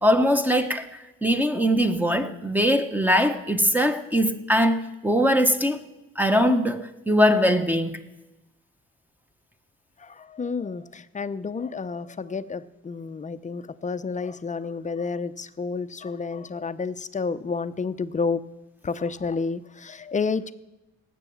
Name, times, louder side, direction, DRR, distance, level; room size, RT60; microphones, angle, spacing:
voice 1, 0.0-0.9 1.2-5.8 6.2-8.0, equal, 5° right, 1.0 m, -21 dB
voice 2, 10.0-18.4 18.8-20.5, left 4 dB, 25° left, 0.6 m, -30 dB
18.0 x 7.6 x 7.1 m
cardioid pair, 90°, 30 cm